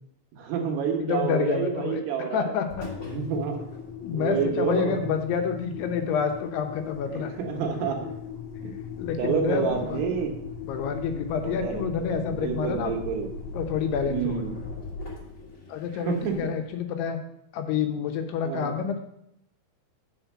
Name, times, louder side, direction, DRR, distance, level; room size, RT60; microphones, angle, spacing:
voice 1, 0.3-2.6 3.1-3.6 4.1-5.1 7.1-8.0 8.6-8.7 9.2-10.3 11.4-13.3 14.1-14.6 16.1-16.3 18.4-18.7, right 7 dB, 75° right, 2 dB, 3.2 m, -29 dB
voice 2, 1.0-2.9 4.0-7.3 9.0-10.0 10.7-12.9 13.5-14.4 15.7-17.2 17.5-19.0, left 7 dB, 80° left, 5 dB, 2.9 m, -28 dB
Engine, 2.7-16.6, left 5 dB, 40° left, 1.1 m, -38 dB
9.1 x 4.5 x 7.2 m, 0.76 s
omnidirectional pair, 4.8 m